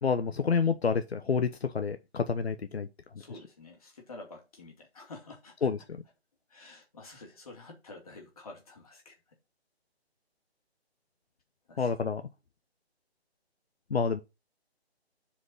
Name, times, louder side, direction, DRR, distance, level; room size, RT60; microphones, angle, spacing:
voice 1, 0.0-2.9 5.6-6.0 11.8-12.2 13.9-14.2, left 5 dB, 70° left, 0.9 m, -28 dB
voice 2, 3.2-5.7 6.5-9.4 11.7-12.1, left 3 dB, 35° left, 2.6 m, -49 dB
6.7 x 5.1 x 5.6 m
hypercardioid pair, 175°, 32 cm